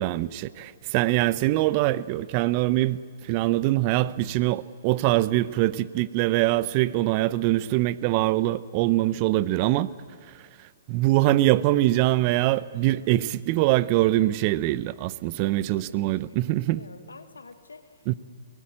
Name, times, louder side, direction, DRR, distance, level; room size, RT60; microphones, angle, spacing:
voice 1, 0.0-9.9 10.9-16.8 18.1-18.2, right 16 dB, 40° right, 0.7 m, -23 dB
voice 2, 15.7-16.3 16.7-18.2, left 4 dB, 85° left, 1.5 m, -48 dB
22.5 x 18.5 x 8.9 m
hypercardioid pair, 125°, 0 cm